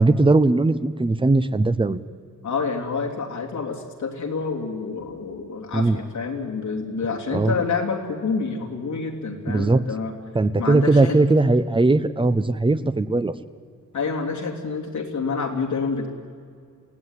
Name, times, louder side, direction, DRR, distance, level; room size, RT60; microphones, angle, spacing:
voice 1, 0.0-2.0 5.7-6.0 7.3-7.5 9.5-9.8 10.3-13.3, right 2 dB, 15° right, 13 dB, 0.7 m, -19 dB
voice 2, 2.4-10.1 10.6-11.2 13.9-16.1, left 4 dB, 75° left, 1 dB, 3.3 m, -28 dB
27.5 x 17.5 x 9.8 m, 2.2 s
wide cardioid pair, 175°, 30 cm